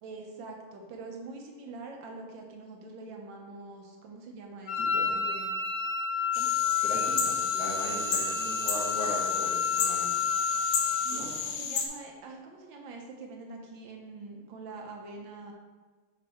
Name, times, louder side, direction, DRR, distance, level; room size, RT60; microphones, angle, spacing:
voice 1, 0.0-5.6 6.3-6.5 11.0-15.5, right 3 dB, 70° right, 1 dB, 1.3 m, -44 dB
Wind instrument woodwind instrument, 4.7-11.3, left 6 dB, 90° left, 1.6 m, -30 dB
voice 2, 4.8-5.1 6.8-10.1 11.1-11.3, left 1 dB, 50° left, -6 dB, 2.1 m, -38 dB
sound 1, 6.3-11.9, left 6 dB, 65° left, 1.0 m, -32 dB
6.2 x 3.6 x 4.3 m, 1.4 s
omnidirectional pair, 2.3 m